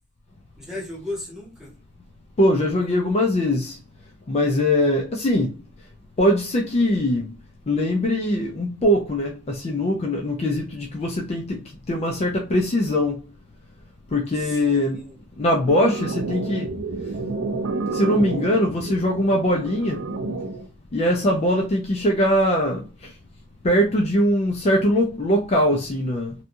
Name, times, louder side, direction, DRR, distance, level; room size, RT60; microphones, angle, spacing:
voice 1, 0.6-1.7 14.4-15.2 21.1-21.4, left 1 dB, 5° right, 1.0 m, -36 dB
voice 2, 2.4-3.8 4.3-5.5 6.2-7.3 7.7-13.2 14.1-15.0 15.4-16.7 17.9-20.0 20.9-22.9 23.6-26.3, left 1 dB, 30° left, 0.4 m, -21 dB
sound 1, 15.7-20.7, right 3 dB, 75° right, 0.4 m, -29 dB
2.7 x 2.3 x 2.6 m
head